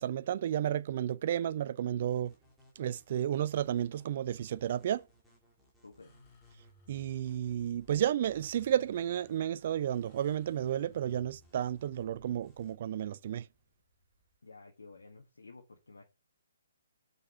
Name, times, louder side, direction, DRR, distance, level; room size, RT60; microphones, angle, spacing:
voice 1, 0.0-2.3 2.8-5.0 6.9-13.4, right 10 dB, 45° right, 0.4 m, -32 dB
sound 1, 2.1-12.8, right 1 dB, ahead, 2.1 m, -66 dB
voice 2, 5.8-6.2 14.4-16.0, left 3 dB, 70° left, 1.3 m, -53 dB
sound 2, 6.0-14.3, left 2 dB, 25° left, 4.3 m, -62 dB
6.0 x 5.1 x 4.7 m
figure-of-eight pair, 130°, 0 cm